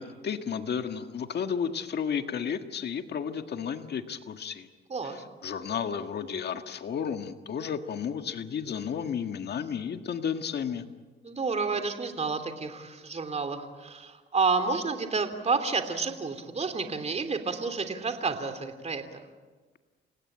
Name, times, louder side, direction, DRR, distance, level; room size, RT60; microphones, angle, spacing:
voice 1, 0.0-4.7 5.1-10.8, left 7 dB, 55° left, 7 dB, 1.7 m, -32 dB
voice 2, 4.9-5.2 11.2-19.2, right 4 dB, 35° right, 8 dB, 3.1 m, -30 dB
29.5 x 17.0 x 8.8 m, 1.3 s
cardioid pair, 90°, 20 cm